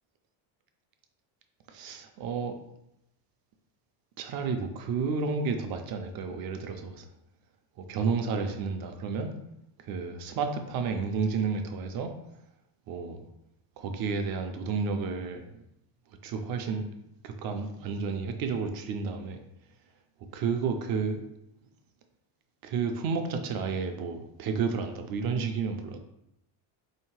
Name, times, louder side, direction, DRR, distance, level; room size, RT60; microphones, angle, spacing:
voice 1, 1.7-2.5 4.2-7.1 7.8-9.3 9.8-12.1 12.9-13.2 13.8-15.6 16.2-16.8 17.2-19.4 20.3-21.3 22.6-26.0, right 5 dB, 50° right, 6 dB, 0.4 m, -31 dB
3.4 x 2.8 x 4.5 m, 0.83 s
cardioid pair, 180°, 47 cm